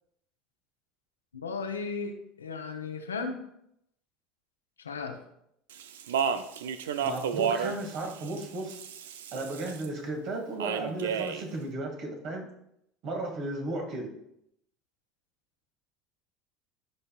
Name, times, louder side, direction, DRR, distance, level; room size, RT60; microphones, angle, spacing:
voice 1, 1.4-3.4 4.8-5.2, left 4 dB, 80° left, 4 dB, 1.0 m, -35 dB
Speech, 5.7-9.9 10.6-11.5, right 7 dB, 70° right, 0.5 m, -32 dB
voice 2, 7.0-8.8 9.3-12.5 13.0-14.1, right 2 dB, 50° right, 1 dB, 2.2 m, -35 dB
15.0 x 5.5 x 2.4 m, 0.77 s
figure-of-eight pair, 70°, 0 cm